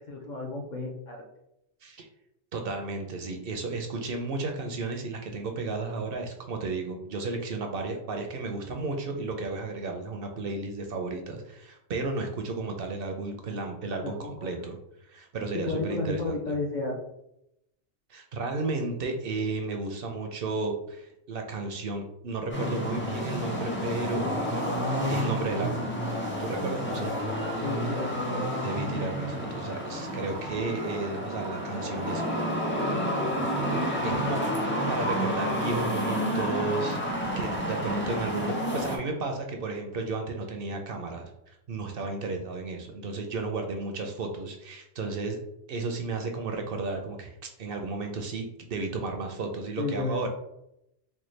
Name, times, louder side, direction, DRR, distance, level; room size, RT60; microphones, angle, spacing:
voice 1, 0.1-1.2 14.0-14.7 15.7-17.0 27.3-28.4 32.0-32.3 49.8-50.3, left 2 dB, 50° left, 0 dB, 0.6 m, -33 dB
voice 2, 2.5-16.4 18.1-24.3 24.9-25.9 26.4-27.5 28.6-32.2 34.0-34.5 34.9-45.4 45.7-48.4 48.7-50.3, right 3 dB, 65° right, 4 dB, 0.7 m, -33 dB
sound 1, 22.5-39.0, equal, 15° left, 0.6 m, -30 dB
4.4 x 2.2 x 3.1 m, 0.82 s
omnidirectional pair, 1.2 m